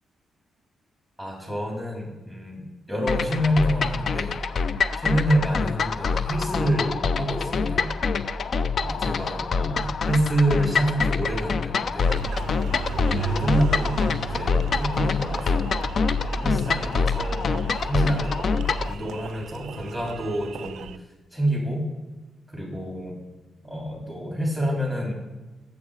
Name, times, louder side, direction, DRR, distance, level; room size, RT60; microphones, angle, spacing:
voice 1, 1.2-4.3 4.9-7.9 8.8-12.1 13.0-15.7 16.4-20.9 21.3-21.9 22.5-23.1 23.6-25.1, right 1 dB, 10° left, -2 dB, 3.2 m, -27 dB
sound 1, 3.1-18.9, left 4 dB, 55° left, 0.4 m, -25 dB
Engine, 12.0-21.0, right 7 dB, 80° right, 0.3 m, -36 dB
7.4 x 7.2 x 4.9 m, 1.2 s
cardioid pair, 90°, 0 cm